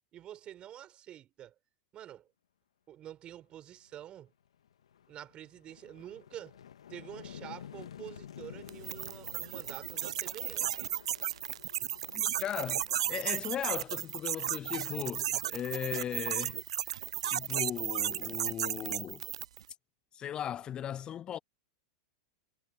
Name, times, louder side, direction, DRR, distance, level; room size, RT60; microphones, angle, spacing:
voice 1, 0.1-1.5 1.9-2.3 2.9-4.3 5.1-6.6 6.9-10.9, right 11 dB, 35° right, 4.4 m, -48 dB
sound 1, 3.9-4.0 4.5-15.2, left 9 dB, 85° left, 1.8 m, -52 dB
sound 2, 8.7-19.6, right 11 dB, 80° right, 0.3 m, -34 dB
sound 3, 12.1-14.5, left 2 dB, 10° left, 2.1 m, -59 dB
voice 2, 12.4-12.8 13.1-19.2 20.1-21.4, left 10 dB, 30° left, 0.3 m, -37 dB
hypercardioid pair, 110°, 3 cm